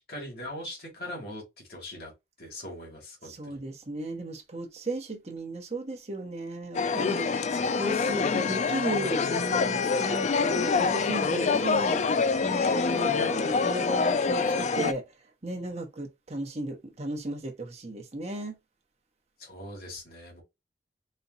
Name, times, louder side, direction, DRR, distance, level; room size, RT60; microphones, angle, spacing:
voice 1, 0.0-1.4 1.7-2.1 2.4-3.6 7.2-8.6 12.2-12.3 19.4-20.4, left 1 dB, 60° left, 2.2 m, -42 dB
voice 2, 3.2-15.1 15.4-18.6, right 1 dB, 40° right, 1.0 m, -35 dB
sound 1, 6.7-14.9, left 4 dB, 40° left, 0.3 m, -26 dB
4.2 x 2.2 x 4.0 m
head